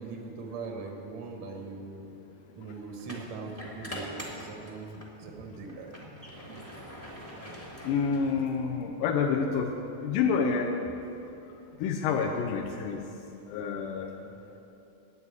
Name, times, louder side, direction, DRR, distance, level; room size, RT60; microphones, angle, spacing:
voice 1, 0.0-2.0 2.6-6.1 14.2-14.5, right 4 dB, 75° right, 2 dB, 1.2 m, -41 dB
sound 1, 3.0-5.2 5.6-8.8, equal, 10° left, 0.6 m, -43 dB
voice 2, 7.8-10.7 11.8-13.0 13.5-14.1, left 5 dB, 80° left, 1 dB, 2.0 m, -28 dB
9.1 x 8.3 x 9.6 m, 2.9 s
omnidirectional pair, 4.3 m